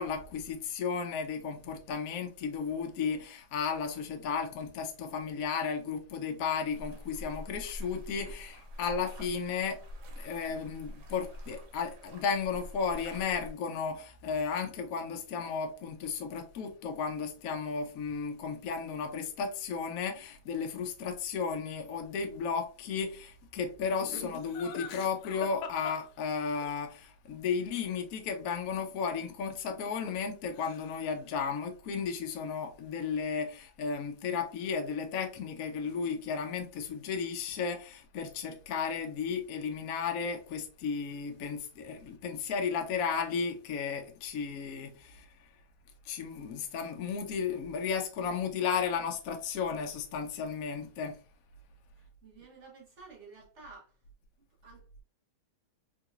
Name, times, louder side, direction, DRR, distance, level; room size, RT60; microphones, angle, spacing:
voice 1, 0.0-9.8 10.2-45.3 46.1-51.2, left 6 dB, 75° left, 0.7 m, -34 dB
sound 1, 6.7-13.5, equal, 80° right, 1.7 m, -45 dB
Laughter, 24.0-26.7 29.5-30.3 30.6-31.1, left 6 dB, 90° left, 1.5 m, -43 dB
voice 2, 52.0-53.9 54.6-55.0, right 3 dB, 40° right, 1.1 m, -52 dB
3.8 x 2.8 x 2.4 m
omnidirectional pair, 2.2 m